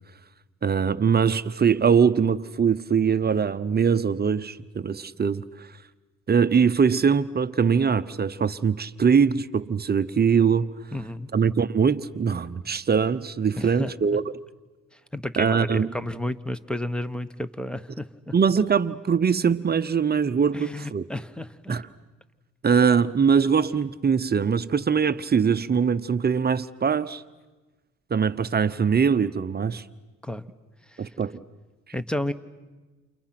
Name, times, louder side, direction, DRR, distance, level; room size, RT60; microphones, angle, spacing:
voice 1, 0.6-5.4 6.3-10.8 11.3-14.2 15.4-15.9 18.3-21.0 21.7-21.8 22.6-27.2 28.1-29.8 31.0-31.4, right 6 dB, 35° right, 0.9 m, -22 dB
voice 2, 10.9-11.3 13.6-14.2 14.9-18.3 20.5-21.8 30.2-30.4 30.9-31.1 31.9-32.3, left 1 dB, 5° left, 1.2 m, -32 dB
29.5 x 29.5 x 6.0 m
cardioid pair, 90°, 30 cm